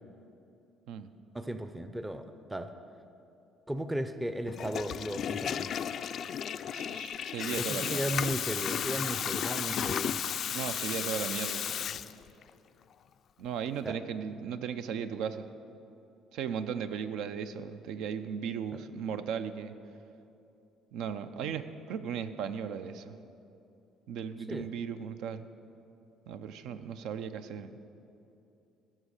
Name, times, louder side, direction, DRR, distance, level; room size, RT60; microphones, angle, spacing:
voice 1, 1.3-2.7 3.7-5.7 7.6-10.2 13.8-14.0 24.5-24.7, right 1 dB, 10° right, 9 dB, 0.5 m, -35 dB
Water tap faucet / Toilet flush, 4.5-12.5, left 9 dB, 50° left, 0.3 m, -34 dB
voice 2, 6.7-8.0 10.5-12.0 13.4-15.5 16.3-19.8 20.9-23.2 24.1-25.5 26.3-27.7, right 7 dB, 75° right, 10 dB, 0.6 m, -36 dB
15.0 x 6.2 x 6.5 m, 2.8 s
cardioid pair, 115°, 0 cm